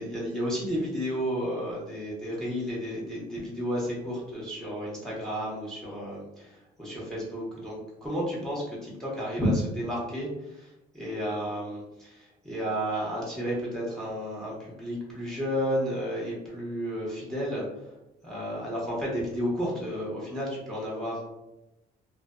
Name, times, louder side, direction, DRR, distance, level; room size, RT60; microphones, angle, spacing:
voice 1, 0.0-7.8 8.0-17.6 18.2-21.2, equal, 5° left, -5 dB, 1.0 m, -32 dB
2.4 x 2.2 x 2.4 m, 0.95 s
cardioid pair, 110°, 17 cm